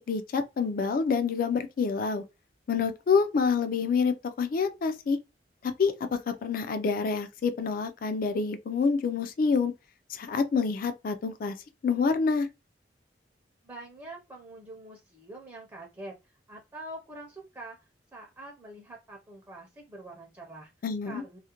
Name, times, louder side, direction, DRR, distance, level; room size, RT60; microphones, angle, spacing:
voice 1, 0.1-2.2 2.7-5.2 5.6-9.7 10.1-11.6 11.8-12.5 20.8-21.2, left 5 dB, 55° left, 0.3 m, -27 dB
voice 2, 13.6-16.1 16.5-17.8 18.1-20.7 21.0-21.4, right 1 dB, 15° right, 0.5 m, -45 dB
2.4 x 2.1 x 2.8 m
head